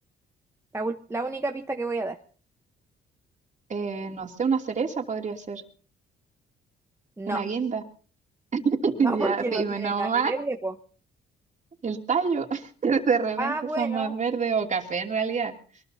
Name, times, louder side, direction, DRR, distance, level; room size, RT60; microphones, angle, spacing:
voice 1, 0.7-2.2 7.2-7.4 9.0-10.7 13.4-14.1, right 2 dB, 15° right, 4 dB, 1.0 m, -30 dB
voice 2, 3.7-5.6 7.3-7.8 8.5-10.3 11.8-15.5, right 5 dB, 35° right, 3 dB, 2.9 m, -27 dB
23.0 x 20.5 x 2.8 m, 0.41 s
cardioid pair, 90°, 20 cm